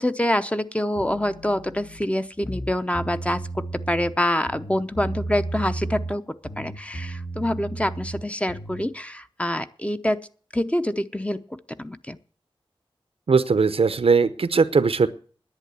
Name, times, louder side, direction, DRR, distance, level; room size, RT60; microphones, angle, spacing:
voice 1, 0.0-6.2 6.6-10.3 10.5-12.2, left 1 dB, 15° left, 10 dB, 0.7 m, -26 dB
sound 1, 0.9-2.0 2.4-4.1 4.5-6.2 6.4-8.8, right 2 dB, 70° left, 3.0 m, -34 dB
voice 2, 13.3-15.1, right 4 dB, 85° right, 14 dB, 0.7 m, -19 dB
10.5 x 8.6 x 8.4 m, 0.44 s
wide cardioid pair, 65°, 10 cm